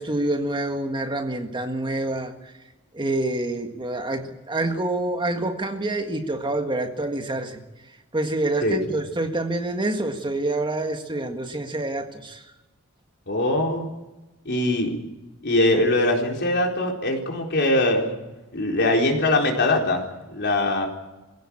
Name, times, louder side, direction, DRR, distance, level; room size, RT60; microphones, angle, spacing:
voice 1, 0.0-2.5 2.9-7.6 8.1-12.5, right 2 dB, 20° right, 5 dB, 1.7 m, -27 dB
voice 2, 8.6-9.0 13.3-13.8 14.4-14.9 15.4-18.2 18.5-20.1 20.3-20.9, left 1 dB, 55° left, 1 dB, 4.2 m, -22 dB
23.5 x 16.5 x 8.7 m, 1.1 s
head